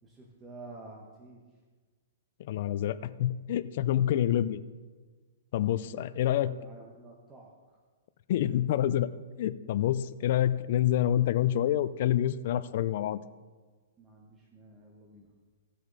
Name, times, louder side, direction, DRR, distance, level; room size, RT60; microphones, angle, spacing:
voice 1, 0.0-1.4 3.8-4.1 5.7-7.8 10.2-10.4 14.0-15.3, right 2 dB, 10° right, -2 dB, 1.1 m, -50 dB
voice 2, 2.4-4.6 5.5-6.6 8.3-9.1 9.4-13.2, left 11 dB, 50° left, 15 dB, 0.4 m, -27 dB
17.0 x 6.5 x 4.0 m, 1.4 s
hypercardioid pair, 160°, 0 cm